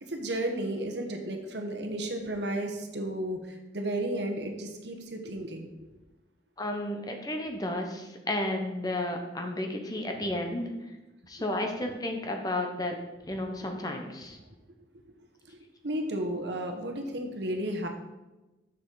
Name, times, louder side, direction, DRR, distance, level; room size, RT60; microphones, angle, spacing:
voice 1, 0.0-5.7 13.6-13.7 15.5-15.6 15.8-17.9, right 1 dB, 65° right, 4 dB, 1.1 m, -33 dB
voice 2, 6.6-10.7 11.3-12.9 13.3-14.4, left 1 dB, 20° left, 3 dB, 0.8 m, -32 dB
6.7 x 6.6 x 3.9 m, 1.1 s
head